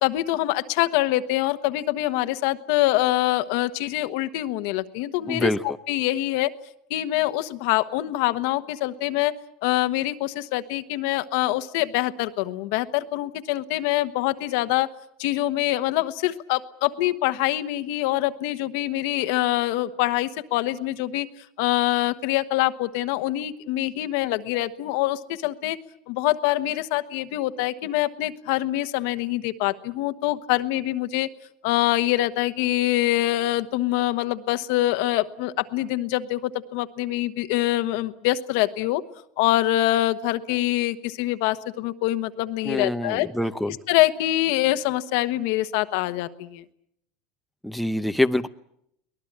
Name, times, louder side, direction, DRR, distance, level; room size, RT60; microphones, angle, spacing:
voice 1, 0.0-6.5 6.9-9.3 9.6-14.9 15.2-21.3 21.6-25.8 26.1-31.3 31.6-39.0 39.4-43.3 43.9-46.6, left 16 dB, 70° left, 10 dB, 1.2 m, -24 dB
voice 2, 5.3-5.8 42.6-43.8 47.6-48.5, left 1 dB, ahead, 8 dB, 0.8 m, -25 dB
23.5 x 18.5 x 8.7 m, 0.75 s
supercardioid pair, 115°, 0 cm